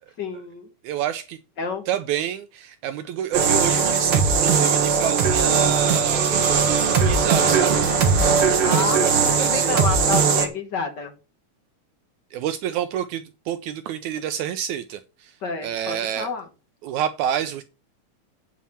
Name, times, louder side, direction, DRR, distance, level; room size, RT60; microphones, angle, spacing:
voice 1, 0.2-0.7 1.6-1.8 8.6-11.1 15.4-16.5, left 5 dB, 45° left, 1.5 m, -29 dB
voice 2, 0.8-1.4 1.9-7.8 8.2-8.3 8.7-9.9 12.3-15.4 15.6-16.3 16.8-17.6, right 10 dB, 80° right, 1.8 m, -29 dB
sound 1, 3.3-10.5, right 6 dB, 55° right, 2.3 m, -19 dB
9.3 x 4.2 x 7.1 m
omnidirectional pair, 3.7 m